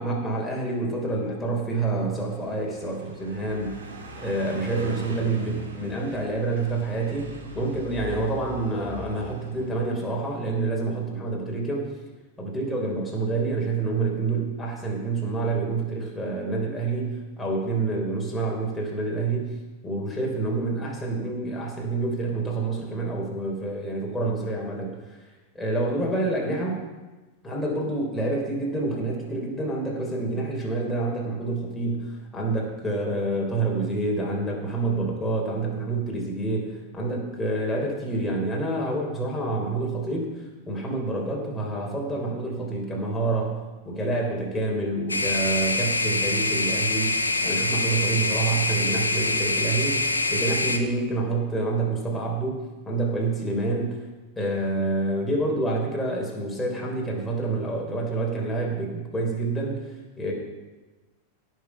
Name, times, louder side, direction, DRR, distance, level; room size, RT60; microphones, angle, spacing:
voice 1, 0.0-3.8 4.2-11.9 12.4-19.5 19.8-25.2 25.5-26.8 27.4-43.6 43.8-54.0 54.4-60.3, right 2 dB, 10° left, -2 dB, 3.8 m, -28 dB
Car passing by, 2.0-10.5, right 2 dB, 65° right, 2.6 m, -41 dB
sound 1, 45.1-50.8, left 2 dB, 80° left, 0.9 m, -25 dB
16.5 x 6.5 x 5.7 m, 1.2 s
figure-of-eight pair, 90°, 0 cm